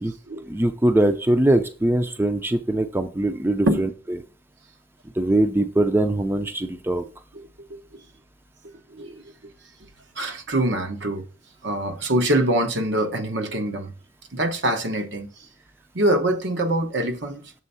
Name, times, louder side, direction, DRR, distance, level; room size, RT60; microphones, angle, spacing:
voice 1, 0.5-3.9 5.2-7.0, right 1 dB, 10° right, 0.5 m, -21 dB
voice 2, 7.3-8.0 8.6-9.5 10.2-11.3 11.6-13.9 14.3-15.5 15.9-17.5, right 1 dB, 75° right, 1.1 m, -25 dB
7.4 x 3.5 x 5.5 m
head